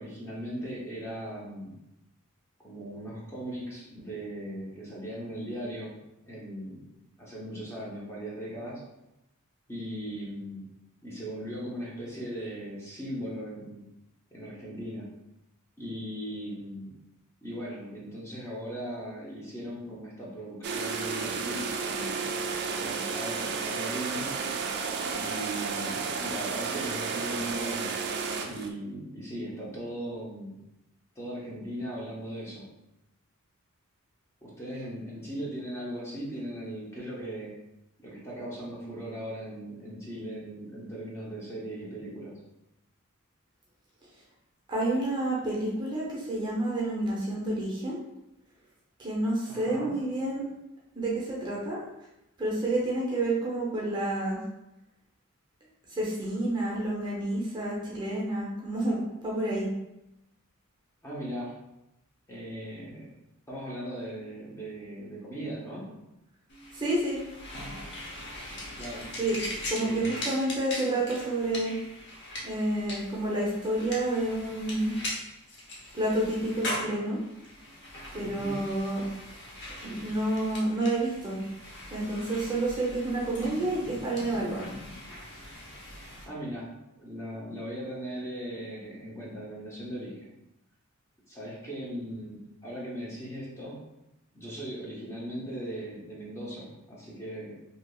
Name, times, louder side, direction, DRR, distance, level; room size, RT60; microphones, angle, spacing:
voice 1, 0.0-1.7 2.6-6.0 6.2-6.8 7.2-8.8 9.7-10.6 11.0-13.8 14.3-15.1 15.8-16.9 17.4-22.2 22.7-24.3 25.1-27.9 28.5-30.6 31.2-32.7 34.4-37.6 38.0-42.3 49.5-50.0 61.0-61.5 62.3-63.1 63.5-65.9 68.7-69.1 69.8-70.2 78.2-78.6 86.2-86.7 87.0-90.3 91.3-93.8 94.3-97.6, equal, 10° left, -6 dB, 0.7 m, -38 dB
sound 1, 20.6-28.7, right 5 dB, 50° right, 0.3 m, -32 dB
voice 2, 44.7-48.0 49.0-50.4 50.9-51.8 52.4-54.4 55.9-59.7 66.7-67.2 69.2-69.4 69.7-71.7 72.4-74.9 75.9-77.2 78.1-79.0 79.8-81.4 81.9-84.7, right 1 dB, 20° right, -5 dB, 0.7 m, -29 dB
sound 2, 66.5-86.2, left 1 dB, 50° left, 0.8 m, -40 dB
3.4 x 2.7 x 2.3 m, 0.89 s
head